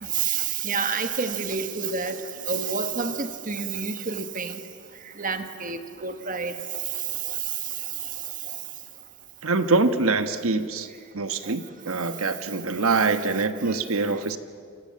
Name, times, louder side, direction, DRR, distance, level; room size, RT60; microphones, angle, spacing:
voice 1, 0.0-4.6 5.2-7.7 8.0-8.1 8.5-8.6 11.4-11.5 13.7-13.8 14.1-14.2, right 6 dB, 35° right, 8 dB, 1.4 m, -29 dB
voice 2, 9.4-10.9 11.1-14.4, right 3 dB, 65° right, 9 dB, 1.2 m, -24 dB
29.0 x 25.5 x 7.7 m, 2.3 s
head